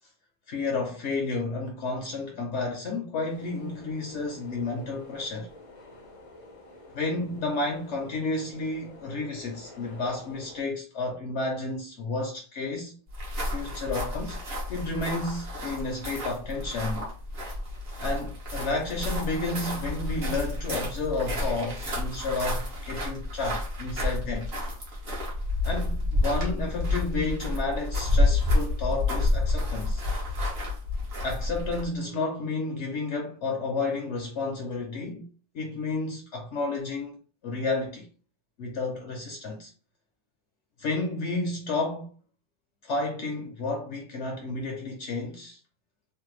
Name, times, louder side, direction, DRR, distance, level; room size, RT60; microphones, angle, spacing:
voice 1, 0.5-5.5 6.9-13.0 13.5-14.4 14.7-17.1 18.0-24.5 25.6-30.0 31.2-35.3 35.5-37.2 37.4-38.1 38.6-39.7 40.8-42.1 42.8-45.6, left 3 dB, 65° left, 0.9 m, -31 dB
sound 1, 3.3-10.6, left 2 dB, 40° left, 0.5 m, -49 dB
Footsteps Stones A, 13.1-32.0, left 2 dB, 50° right, 1.2 m, -29 dB
3.3 x 2.1 x 3.1 m
omnidirectional pair, 1.4 m